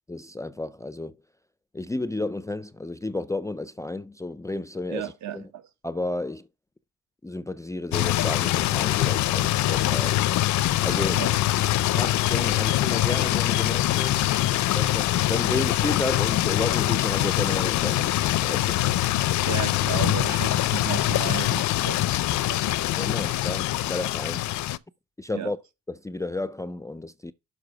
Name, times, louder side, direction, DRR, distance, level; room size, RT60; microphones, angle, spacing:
voice 1, 0.1-1.2 1.7-5.5 5.8-6.5 7.2-10.2 10.8-11.3 11.9-14.2 14.7-18.8 23.0-24.5 25.2-25.6 25.9-27.3, left 2 dB, 10° left, 0.4 m, -32 dB
voice 2, 4.9-5.6 11.1-11.3 19.4-22.6 25.3-25.5, right 11 dB, 65° right, 1.2 m, -34 dB
sound 1, 7.9-24.8, left 15 dB, 70° left, 0.5 m, -24 dB
6.6 x 4.8 x 5.9 m
cardioid pair, 90°, 30 cm